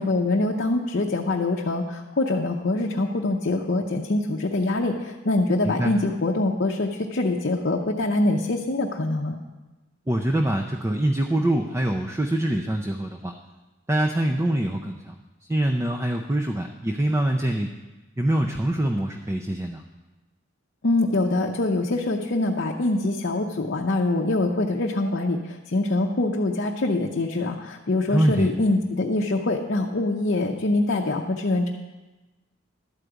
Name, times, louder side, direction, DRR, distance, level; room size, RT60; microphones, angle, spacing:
voice 1, 0.0-9.4 20.8-31.7, left 2 dB, 55° left, 0 dB, 0.7 m, -24 dB
voice 2, 10.1-13.3 13.9-15.2 15.5-17.7 18.2-19.8 28.1-28.5, right 1 dB, 15° right, 3 dB, 0.5 m, -24 dB
12.0 x 4.9 x 7.9 m, 1.2 s
head